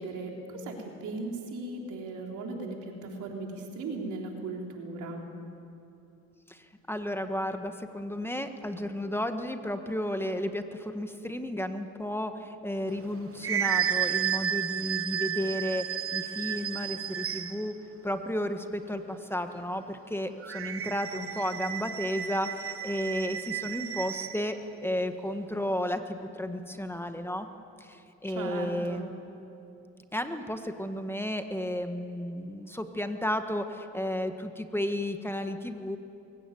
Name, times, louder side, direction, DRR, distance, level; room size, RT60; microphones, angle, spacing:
voice 1, 0.0-5.2 28.4-29.1, right 2 dB, 80° right, 1 dB, 3.7 m, -37 dB
voice 2, 6.5-17.7 18.0-27.5 27.8-29.1 30.1-36.0, left 1 dB, 10° left, 7 dB, 1.5 m, -33 dB
sound 1, 12.9-17.7 20.4-24.4, right 9 dB, 45° right, 1.2 m, -32 dB
22.5 x 17.0 x 9.3 m, 2.7 s
cardioid pair, 90°, 30 cm